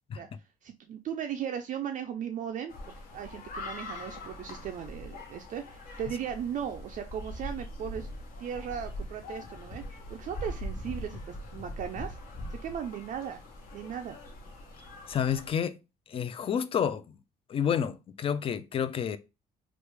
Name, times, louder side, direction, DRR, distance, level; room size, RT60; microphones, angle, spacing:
voice 1, 0.6-8.1 8.4-12.2 12.5-13.4 13.7-14.2, right 8 dB, 50° right, 0.4 m, -37 dB
Cinque Terra Boys playing football, 2.7-15.5, left 1 dB, 55° left, 1.1 m, -42 dB
voice 2, 15.1-15.8 16.1-17.2 17.5-19.2, left 8 dB, 35° left, 0.3 m, -29 dB
3.1 x 2.4 x 3.3 m
cardioid pair, 110°, 17 cm